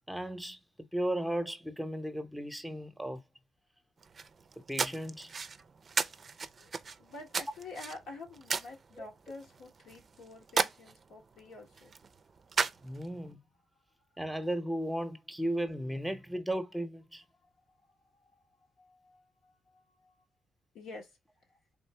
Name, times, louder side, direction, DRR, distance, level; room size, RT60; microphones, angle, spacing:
voice 1, 0.1-3.2 4.7-5.3 9.0-9.1 12.8-13.4 14.2-17.2, right 1 dB, 5° right, 0.8 m, -35 dB
sound 1, 4.0-13.3, right 5 dB, 45° right, 0.4 m, -37 dB
voice 2, 7.0-11.9 17.8-17.9 18.2-18.3 18.8-20.2 20.7-21.2, left 3 dB, 85° left, 1.2 m, -48 dB
3.6 x 2.7 x 3.3 m
supercardioid pair, 60°, 0 cm